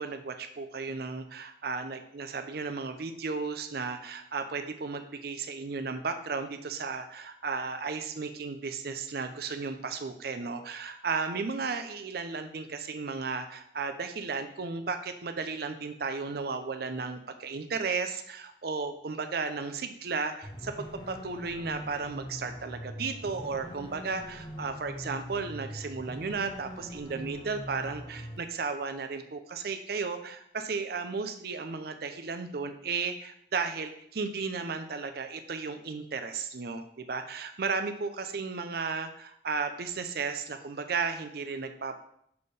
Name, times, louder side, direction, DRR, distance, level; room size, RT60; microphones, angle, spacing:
voice 1, 0.0-42.1, right 4 dB, 60° right, 8 dB, 0.5 m, -34 dB
sound 1, 20.4-28.4, equal, 25° left, 1.0 m, -42 dB
6.8 x 4.3 x 3.3 m, 0.71 s
head